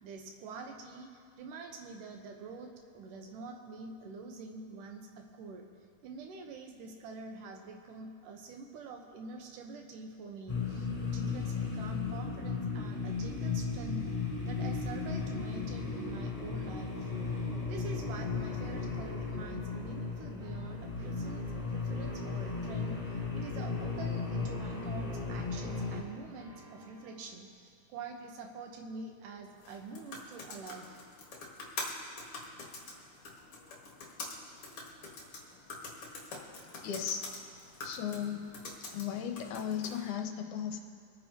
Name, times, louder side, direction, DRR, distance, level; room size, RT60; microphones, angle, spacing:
voice 1, 0.0-5.7 6.0-14.1 14.5-17.1 17.7-31.1, right 4 dB, 80° right, 3 dB, 2.6 m, -46 dB
sound 1, 10.5-26.0, left 4 dB, 15° left, 2.2 m, -35 dB
sound 2, 20.4-27.2, right 1 dB, 60° right, 3.5 m, -56 dB
sound 3, 29.6-40.1, left 3 dB, 50° left, 2.4 m, -45 dB
voice 2, 36.8-37.2 37.8-38.5 38.9-40.8, left 8 dB, 75° left, 4 dB, 2.2 m, -36 dB
25.5 x 9.6 x 2.9 m, 2.3 s
omnidirectional pair, 3.7 m